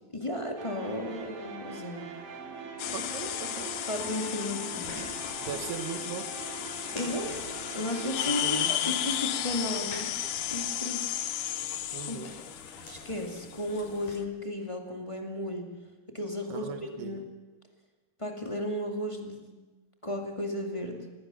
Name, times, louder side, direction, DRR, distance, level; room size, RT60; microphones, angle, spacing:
voice 1, 0.1-2.0 3.9-4.9 6.9-7.5 7.7-10.1 10.5-11.3 12.1-12.2 12.8-15.7 16.1-16.7 17.0-17.3 18.2-19.5 20.0-21.0, left 1 dB, 15° left, 3 dB, 1.3 m, -34 dB
sound 1, 0.6-11.5, right 6 dB, 60° right, 4.2 m, -43 dB
sound 2, 2.8-14.2, left 12 dB, 75° left, 1.9 m, -34 dB
voice 2, 2.9-3.7 5.4-6.3 8.3-9.0 11.9-12.3 16.5-17.1, right 7 dB, 80° right, 7 dB, 3.4 m, -39 dB
sound 3, 4.7-14.2, left 1 dB, 45° left, 7.0 m, -48 dB
26.0 x 20.0 x 7.0 m, 1.2 s
omnidirectional pair, 4.6 m